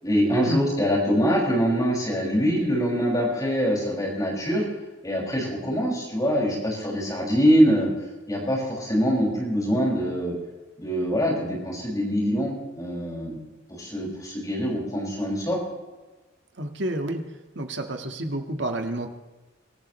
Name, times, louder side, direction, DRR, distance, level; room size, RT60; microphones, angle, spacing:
voice 1, 0.0-4.6 5.0-7.9 8.3-10.3 10.8-13.4 13.7-15.6, equal, 20° left, -3 dB, 6.1 m, -24 dB
voice 2, 16.6-17.2 17.6-19.1, right 1 dB, 65° right, 5 dB, 1.8 m, -29 dB
25.0 x 14.5 x 3.3 m, 1.2 s
head